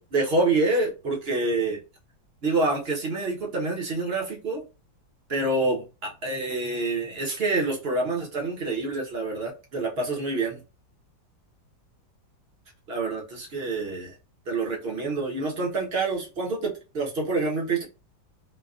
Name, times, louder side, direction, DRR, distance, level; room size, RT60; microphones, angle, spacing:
voice 1, 0.1-1.8 2.4-4.6 5.3-10.6 12.9-14.1 14.5-17.8, right 3 dB, 40° right, -1 dB, 1.0 m, -27 dB
4.4 x 2.3 x 2.4 m, 0.30 s
omnidirectional pair, 2.1 m